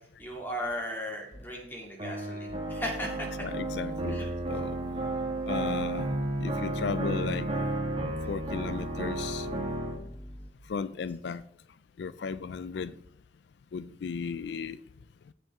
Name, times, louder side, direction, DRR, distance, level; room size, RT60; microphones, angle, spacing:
voice 1, 0.2-3.3 4.1-4.3, equal, 10° left, -1 dB, 2.5 m, -36 dB
sound 1, 1.3-1.4 2.5-10.5, equal, 40° left, 1.6 m, -45 dB
sound 2, 2.0-10.0, right 2 dB, 30° right, 1.9 m, -32 dB
voice 2, 3.4-4.8 5.5-6.1 6.4-7.5 8.3-9.5 10.7-11.4 12.0-12.9 13.7-14.8, left 5 dB, 75° left, 14 dB, 0.4 m, -35 dB
16.0 x 5.5 x 3.6 m, 0.72 s
head